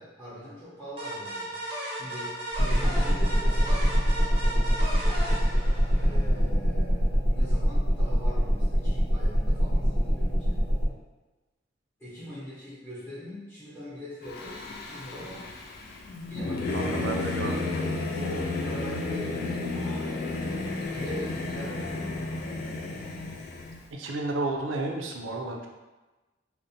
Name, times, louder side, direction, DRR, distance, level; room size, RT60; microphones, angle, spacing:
voice 1, 0.0-1.6 1.9-3.9 5.9-10.6 12.0-15.6 16.3-17.7 18.2-20.1 20.9-22.3, left 1 dB, 15° left, -12 dB, 0.7 m, -42 dB
sound 1, 1.0-6.4, right 1 dB, 30° right, 0.6 m, -36 dB
sound 2, 2.6-10.9, equal, 80° left, 0.9 m, -24 dB
Singing / Musical instrument, 14.3-23.8, left 2 dB, 55° left, 0.3 m, -32 dB
voice 2, 16.7-17.5 23.9-25.7, right 2 dB, 75° right, 1 dB, 0.4 m, -32 dB
2.5 x 2.1 x 2.6 m, 1.1 s
head